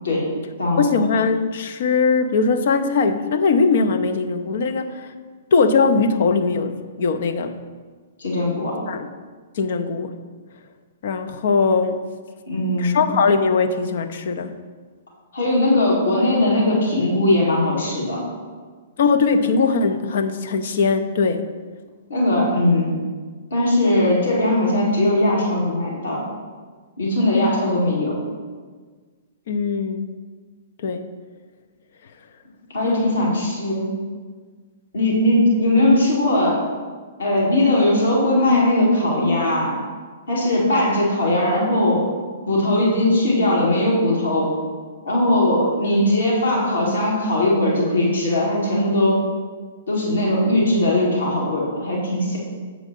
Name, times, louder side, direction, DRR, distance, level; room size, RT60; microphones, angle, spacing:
voice 1, 0.8-5.1 5.5-7.6 8.9-9.1 9.6-10.1 11.0-12.0 12.8-14.5 19.0-21.5 29.5-30.1 30.8-31.0 32.8-33.3, left 4 dB, 60° left, 7 dB, 0.6 m, -20 dB
voice 2, 8.2-8.7 12.5-13.0 15.3-18.2 22.1-22.9 23.5-26.2 27.0-28.1 32.7-34.0 34.9-36.6 37.2-39.7 40.3-42.0 42.5-44.5 45.0-49.2 49.9-52.4, left 1 dB, 75° left, -4 dB, 2.4 m, -19 dB
8.1 x 4.7 x 5.4 m, 1.5 s
figure-of-eight pair, 115°, 0 cm